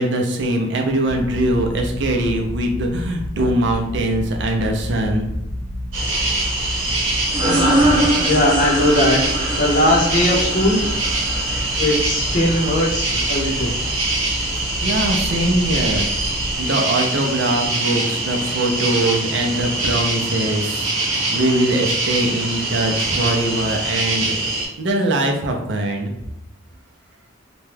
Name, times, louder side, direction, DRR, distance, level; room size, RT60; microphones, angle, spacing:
voice 1, 0.0-5.3 14.6-16.0 16.6-24.3 24.8-26.1, right 1 dB, 60° right, 3 dB, 0.5 m, -22 dB
sound 1, 1.0-16.6, left 1 dB, 65° left, 1.0 m, -30 dB
sound 2, 5.9-24.7, right 2 dB, 85° right, 1.0 m, -24 dB
sound 3, 7.3-12.7, right 1 dB, 25° right, 0.7 m, -22 dB
voice 2, 7.8-9.3 9.6-10.8 11.8-13.7, left 1 dB, 40° left, -2 dB, 0.7 m, -19 dB
2.9 x 2.2 x 3.2 m, 0.86 s
head